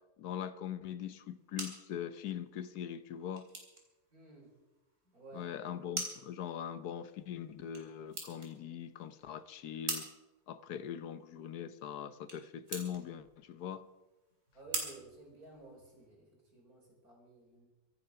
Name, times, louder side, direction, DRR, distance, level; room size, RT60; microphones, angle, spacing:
voice 1, 0.2-3.5 5.3-10.1 10.5-13.8, left 9 dB, 75° left, 13 dB, 1.3 m, -41 dB
sound 1, 1.1-16.1, right 2 dB, 45° right, 4.0 m, -46 dB
voice 2, 4.1-4.5 5.1-5.5 14.5-16.3 16.5-17.7, right 2 dB, 60° right, 0 dB, 4.9 m, -54 dB
24.5 x 9.3 x 5.7 m, 1.1 s
omnidirectional pair, 1.7 m